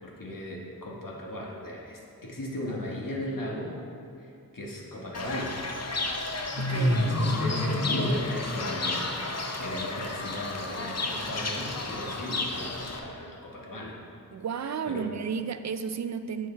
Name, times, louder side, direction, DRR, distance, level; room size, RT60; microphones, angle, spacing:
voice 1, 0.0-3.7 4.2-5.6 6.7-9.1 9.6-13.9 14.9-15.0, left 1 dB, 60° left, -3 dB, 1.7 m, -36 dB
Fowl / Bird, 5.1-13.0, left 2 dB, 45° left, 0.9 m, -30 dB
voice 2, 6.6-7.0 14.3-16.5, right 6 dB, 50° right, 10 dB, 0.5 m, -32 dB
7.9 x 6.7 x 4.5 m, 2.5 s
cardioid pair, 50°, 37 cm